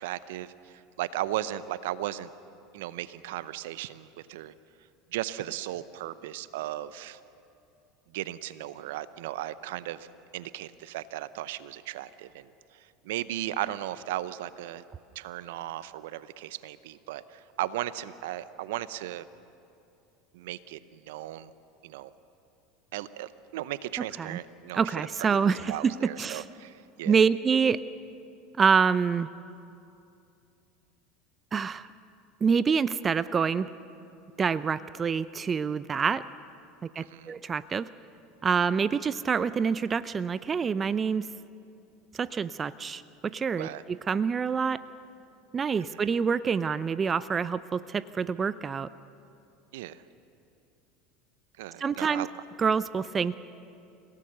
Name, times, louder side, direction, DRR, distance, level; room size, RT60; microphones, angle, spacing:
voice 1, 0.0-2.3 2.7-4.5 5.1-7.2 8.1-10.1 10.3-14.8 15.1-19.3 20.3-21.5 21.8-22.1 22.9-27.2 37.0-37.3 43.6-43.8 45.9-46.0 49.7-50.0 51.6-52.3, right 14 dB, 70° right, 16 dB, 0.7 m, -36 dB
voice 2, 24.7-26.4 27.1-27.8 28.6-29.3 31.5-31.9 32.4-33.7 34.4-36.2 37.0-37.9 38.4-41.3 42.1-44.8 45.5-48.9 51.8-52.3 52.6-53.3, right 6 dB, 30° right, 16 dB, 0.6 m, -26 dB
30.0 x 17.5 x 6.7 m, 2.7 s
hypercardioid pair, 80°, 0 cm